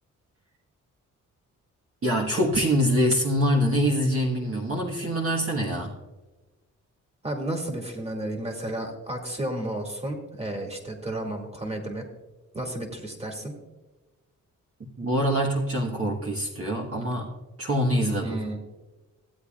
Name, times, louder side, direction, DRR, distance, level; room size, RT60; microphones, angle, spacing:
voice 1, 2.0-5.9 14.8-17.3 17.6-18.4, equal, 40° right, -2 dB, 1.5 m, -24 dB
voice 2, 7.2-12.0 12.5-13.5 18.2-18.6, right 1 dB, 20° right, 2 dB, 2.3 m, -32 dB
16.0 x 8.5 x 2.4 m, 1.1 s
cardioid pair, 55°, 34 cm